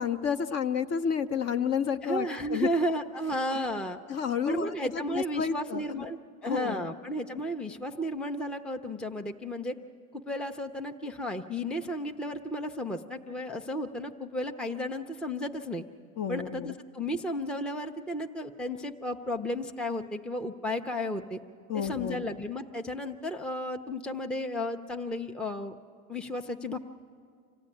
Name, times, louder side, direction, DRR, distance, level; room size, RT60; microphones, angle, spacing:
voice 1, 0.0-2.7 3.5-3.6 4.1-6.1 6.4-6.9 16.2-16.7 21.7-22.2, left 7 dB, 35° left, 10 dB, 0.7 m, -31 dB
voice 2, 2.0-4.0 4.5-9.8 10.1-15.8 16.3-21.4 21.7-25.7 26.1-26.8, equal, ahead, 5 dB, 0.6 m, -33 dB
26.0 x 15.0 x 9.8 m, 2.2 s
supercardioid pair, 115°, 43 cm